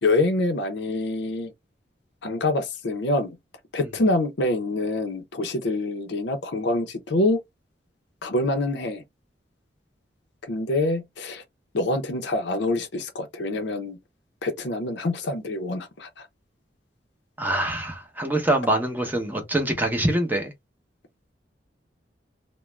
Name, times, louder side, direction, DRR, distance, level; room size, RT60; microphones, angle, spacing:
voice 1, 0.0-1.5 2.2-3.4 3.7-7.4 8.2-9.0 10.5-11.4 11.7-14.0 14.4-16.1, left 2 dB, 70° left, 0.6 m, -25 dB
voice 2, 17.4-20.5, right 1 dB, 10° right, 0.7 m, -24 dB
2.3 x 2.1 x 3.1 m
head